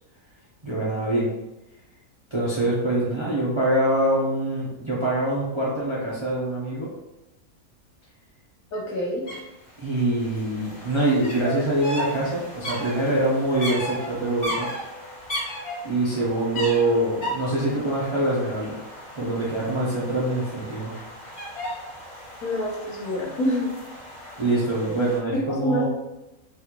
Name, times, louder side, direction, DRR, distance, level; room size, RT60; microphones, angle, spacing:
voice 1, 0.6-1.3 2.3-6.9 9.8-14.7 15.8-18.8 19.2-20.9 24.4-25.9, right 1 dB, 35° right, -6 dB, 0.5 m, -24 dB
voice 2, 8.7-9.2 22.4-23.7 24.9-25.0 25.6-25.9, equal, 70° left, -2 dB, 1.3 m, -26 dB
sound 1, 9.3-9.4 9.6-25.2, equal, 55° left, 1.8 m, -36 dB
4.0 x 2.4 x 2.9 m, 0.97 s
omnidirectional pair, 1.5 m